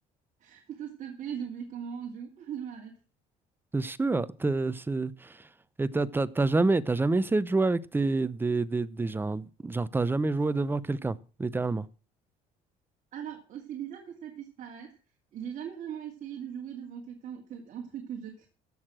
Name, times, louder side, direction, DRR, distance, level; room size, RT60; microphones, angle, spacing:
voice 1, 0.4-2.9 13.1-15.0 15.3-18.5, right 8 dB, 55° right, 2.5 m, -39 dB
voice 2, 3.7-5.5 5.8-11.9, right 3 dB, 15° right, 0.7 m, -28 dB
15.5 x 6.6 x 6.0 m
cardioid pair, 110°, 16 cm